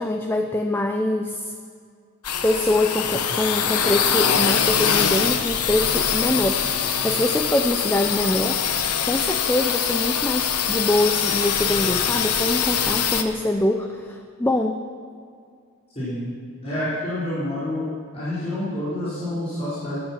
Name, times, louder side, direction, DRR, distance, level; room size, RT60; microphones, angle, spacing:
voice 1, 0.0-1.5 2.4-8.6 9.1-14.8, left 1 dB, 10° left, 5 dB, 0.5 m, -24 dB
sound 1, 2.2-13.2, left 7 dB, 85° left, 1.0 m, -23 dB
voice 2, 15.9-16.3 16.6-17.9 18.1-20.0, left 1 dB, 30° left, -12 dB, 4.4 m, -28 dB
17.0 x 12.0 x 5.8 m, 2.2 s
head